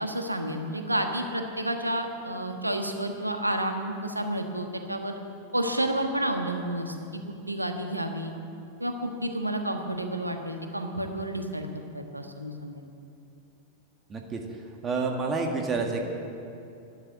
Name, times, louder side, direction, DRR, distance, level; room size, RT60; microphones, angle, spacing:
voice 1, 0.0-5.1 5.5-6.9 7.5-8.3 8.8-12.8, right 1 dB, 85° right, 5 dB, 1.3 m, -30 dB
voice 2, 14.1-14.4 14.8-16.0, right 4 dB, 25° right, 2 dB, 1.8 m, -28 dB
12.0 x 12.0 x 8.6 m, 2.7 s
figure-of-eight pair, 90°, 0 cm